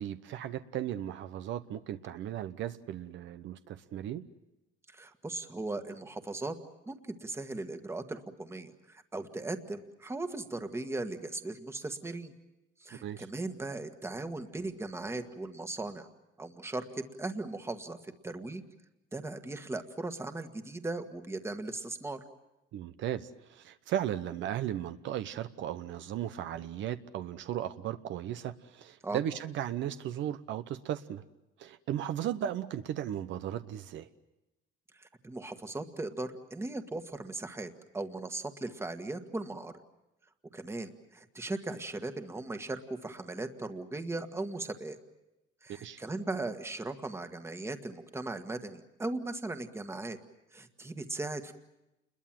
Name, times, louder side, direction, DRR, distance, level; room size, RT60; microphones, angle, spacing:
voice 1, 0.0-4.3 13.0-13.2 22.7-31.2 31.6-34.1 45.7-46.0, right 11 dB, 65° right, 11 dB, 1.0 m, -36 dB
voice 2, 4.9-6.6 6.9-12.3 12.8-16.1 16.4-18.6 19.1-22.2 29.0-29.2 34.9-39.7 40.5-45.0 45.6-50.2 50.5-51.5, right 2 dB, 10° right, 8 dB, 1.7 m, -38 dB
29.0 x 22.0 x 7.6 m, 0.94 s
cardioid pair, 140°, 21 cm